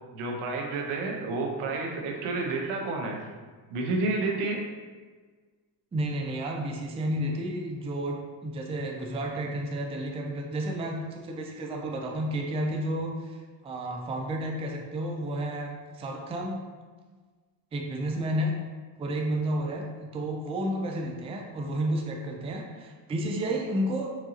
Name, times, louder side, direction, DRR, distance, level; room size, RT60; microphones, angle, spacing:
voice 1, 0.1-3.2 3.7-4.6, right 3 dB, 85° right, 1 dB, 1.0 m, -30 dB
voice 2, 5.9-16.6 17.7-18.5 19.0-24.2, right 1 dB, 15° right, 1 dB, 0.3 m, -31 dB
4.7 x 3.8 x 2.9 m, 1.4 s
cardioid pair, 125°, 48 cm